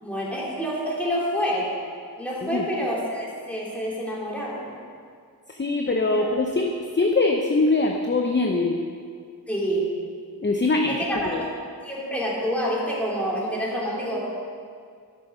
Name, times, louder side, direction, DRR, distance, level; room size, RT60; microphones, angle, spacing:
voice 1, 0.0-1.7 2.2-4.7 6.1-6.4 9.5-9.9 10.9-11.3 11.8-14.2, equal, 5° left, -5 dB, 2.6 m, -27 dB
voice 2, 5.5-8.8 10.4-11.5, left 3 dB, 30° left, 2 dB, 0.7 m, -23 dB
12.5 x 5.9 x 5.4 m, 2.2 s
wide cardioid pair, 60°, 39 cm